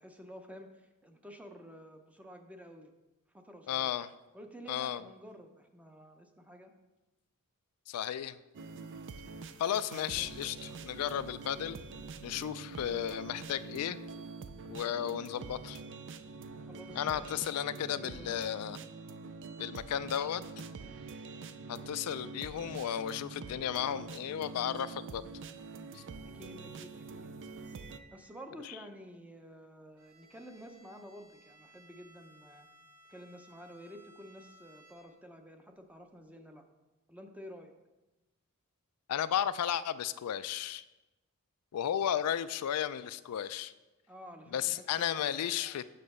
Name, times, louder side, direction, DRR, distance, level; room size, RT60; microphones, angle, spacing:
voice 1, 0.0-2.9 3.3-3.9 4.3-6.7 10.0-10.3 16.7-18.7 26.3-27.3 28.1-32.7 33.1-36.6 37.1-37.7 44.1-45.9, equal, 5° right, 5 dB, 0.6 m, -51 dB
voice 2, 3.7-4.1 4.7-5.0 7.9-8.4 9.6-11.8 12.2-14.0 14.7-15.8 16.9-18.8 19.6-20.4 21.7-25.2 25.9-26.0 28.6-28.8 39.1-40.8 41.7-43.7 44.5-45.8, left 9 dB, 85° left, 14 dB, 0.4 m, -34 dB
sound 1, 8.5-28.0, right 4 dB, 55° right, 0.4 m, -45 dB
Cymbal, 27.5-29.0, right 5 dB, 70° right, 1.4 m, -61 dB
Bowed string instrument, 30.0-35.4, equal, 90° right, 2.5 m, -61 dB
6.7 x 6.1 x 5.4 m, 1.1 s
head